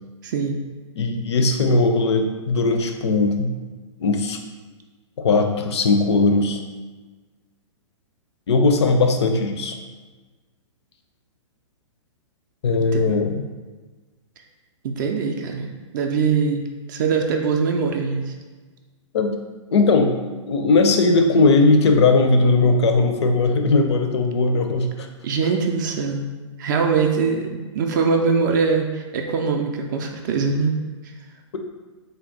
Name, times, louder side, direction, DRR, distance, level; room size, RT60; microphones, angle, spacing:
voice 1, 0.2-0.6 12.9-13.2 14.8-15.7 15.9-18.3 25.2-26.3 26.6-30.7, right 5 dB, 40° right, 3 dB, 0.4 m, -22 dB
voice 2, 1.0-3.5 4.0-4.4 5.2-6.6 8.5-9.8 12.6-13.4 19.1-19.3 19.7-20.1 20.5-25.1, left 3 dB, 60° left, 5 dB, 0.5 m, -18 dB
3.4 x 2.2 x 3.9 m, 1.3 s
figure-of-eight pair, 115°, 16 cm